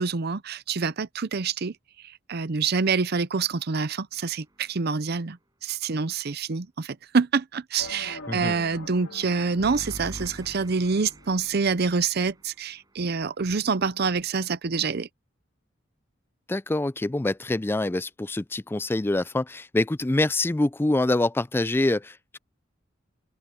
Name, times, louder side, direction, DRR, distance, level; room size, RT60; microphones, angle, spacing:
voice 1, 0.0-1.7 2.0-15.1, right 5 dB, 55° right, 0.7 m, -26 dB
sound 1, 4.1-4.8 9.6-13.3, equal, 20° right, 6.1 m, -45 dB
sound 2, 7.8-11.8, left 2 dB, 90° left, 2.0 m, -44 dB
voice 2, 16.5-22.4, left 2 dB, 10° left, 0.4 m, -25 dB
open air
head